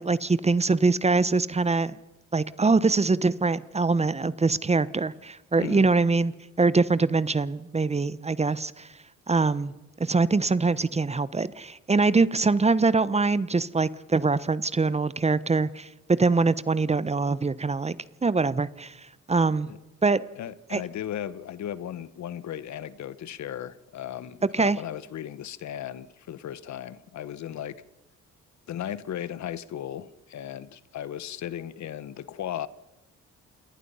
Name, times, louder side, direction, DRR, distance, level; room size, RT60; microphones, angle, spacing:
voice 1, 0.0-2.0 2.3-6.3 6.6-8.9 9.3-9.7 10.0-17.9 18.2-18.9 19.3-19.7 20.0-20.2 20.7-20.8 24.5-24.8, right 3 dB, 20° right, 0.9 m, -23 dB
voice 2, 5.6-5.9 19.7-19.8 20.4-27.8 28.7-32.7, left 10 dB, 65° left, 1.1 m, -36 dB
28.0 x 19.0 x 5.6 m
cardioid pair, 90°, 30 cm